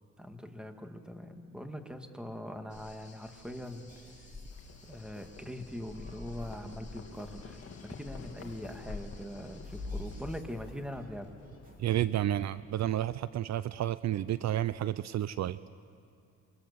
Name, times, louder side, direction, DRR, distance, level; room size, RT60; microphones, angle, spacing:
voice 1, 0.2-3.9 4.9-7.6 7.8-11.3, equal, 5° right, 5 dB, 2.2 m, -42 dB
sound 1, 2.7-10.4, left 3 dB, 25° left, 2.9 m, -46 dB
sound 2, 3.2-12.0, right 2 dB, 30° right, 3.9 m, -58 dB
Livestock farm animals working animals, 4.5-13.1, left 6 dB, 50° left, 2.1 m, -53 dB
voice 2, 11.8-15.6, right 12 dB, 65° right, 16 dB, 0.6 m, -31 dB
28.5 x 24.5 x 7.0 m, 2.5 s
cardioid pair, 90°, 30 cm